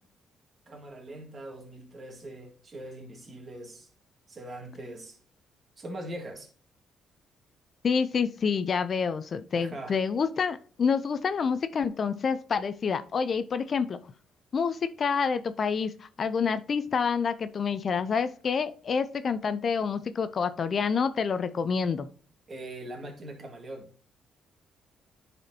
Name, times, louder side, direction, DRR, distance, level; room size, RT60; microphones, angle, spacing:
voice 1, 0.7-3.9 4.3-5.2 5.8-6.5 9.5-10.0 22.5-23.9, right 1 dB, 40° right, 1.8 m, -41 dB
voice 2, 7.8-14.0 14.5-22.1, left 6 dB, 50° left, 0.5 m, -28 dB
10.0 x 4.2 x 2.8 m
cardioid pair, 90°, 0 cm